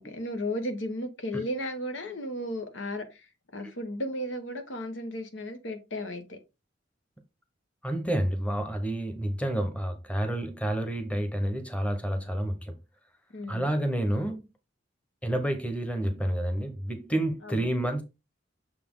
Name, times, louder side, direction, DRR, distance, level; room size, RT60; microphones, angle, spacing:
voice 1, 0.0-6.4 13.3-13.7 17.4-17.7, left 1 dB, 90° left, 1.3 m, -35 dB
voice 2, 7.8-12.7 13.5-14.5 15.2-18.0, right 1 dB, 5° left, 1.0 m, -29 dB
6.5 x 4.2 x 3.8 m
head